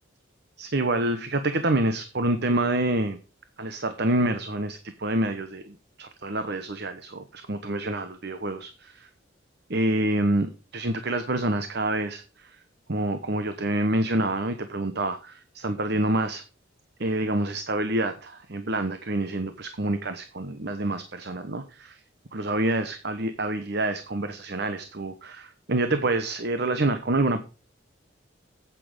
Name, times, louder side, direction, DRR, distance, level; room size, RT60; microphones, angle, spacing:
voice 1, 0.6-3.2 3.6-9.1 9.7-12.5 12.9-16.4 17.0-22.0 22.3-27.4, right 1 dB, 55° right, 9 dB, 1.1 m, -27 dB
8.8 x 8.6 x 5.0 m, 0.34 s
head